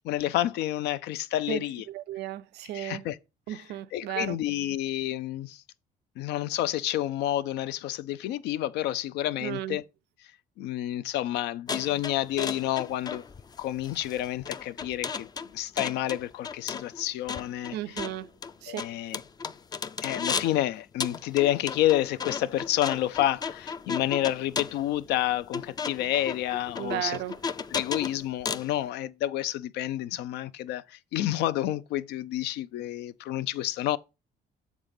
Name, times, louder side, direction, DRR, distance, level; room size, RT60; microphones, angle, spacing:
voice 1, 0.0-1.9 2.7-3.2 3.5-3.6 3.9-5.6 6.2-9.8 10.6-13.2 13.6-15.3 15.5-18.0 18.7-19.2 20.0-27.2 27.7-34.0, left 13 dB, 80° left, 0.5 m, -29 dB
voice 2, 1.9-3.0 3.5-4.4 9.4-9.8 17.7-18.3 18.6-18.8 26.8-27.3, right 13 dB, 75° right, 0.5 m, -34 dB
sound 1, 11.7-20.6 21.0-28.7, left 5 dB, 25° left, 0.4 m, -35 dB
7.4 x 4.0 x 5.2 m
cardioid pair, 110°, 17 cm